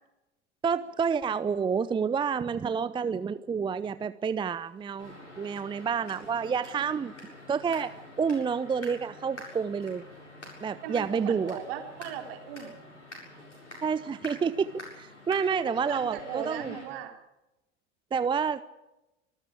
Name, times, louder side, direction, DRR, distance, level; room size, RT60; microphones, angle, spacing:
voice 1, 0.6-7.1 7.5-7.9 8.2-10.0 10.6-11.6 13.8-16.8 18.1-18.6, right 6 dB, 15° right, 15 dB, 0.6 m, -29 dB
sound 1, 5.0-16.8, left 1 dB, 85° left, 7.5 m, -47 dB
voice 2, 10.8-12.7 15.5-17.1, right 9 dB, 55° right, 4 dB, 3.8 m, -38 dB
25.0 x 14.0 x 8.7 m, 0.98 s
figure-of-eight pair, 80°, 35 cm